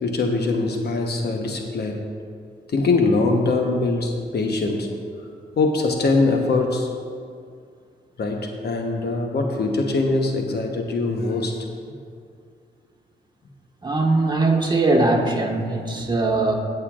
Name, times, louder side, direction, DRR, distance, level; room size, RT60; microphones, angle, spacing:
voice 1, 0.0-2.0 2.7-4.9 5.6-6.9 8.2-11.7 16.0-16.1, left 3 dB, 65° left, 2 dB, 1.1 m, -22 dB
voice 2, 13.8-16.5, right 2 dB, 25° right, 0 dB, 1.5 m, -20 dB
19.0 x 6.6 x 2.5 m, 2.3 s
cardioid pair, 65°, 18 cm